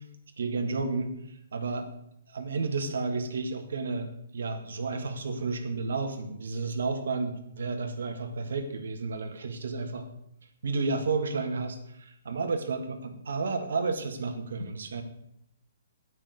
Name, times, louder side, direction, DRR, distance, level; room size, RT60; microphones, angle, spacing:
voice 1, 0.4-1.1 1.5-1.9 2.3-10.1 10.6-15.0, right 4 dB, 75° right, 6 dB, 1.7 m, -31 dB
9.1 x 6.3 x 7.8 m, 0.76 s
hypercardioid pair, 145°, 0 cm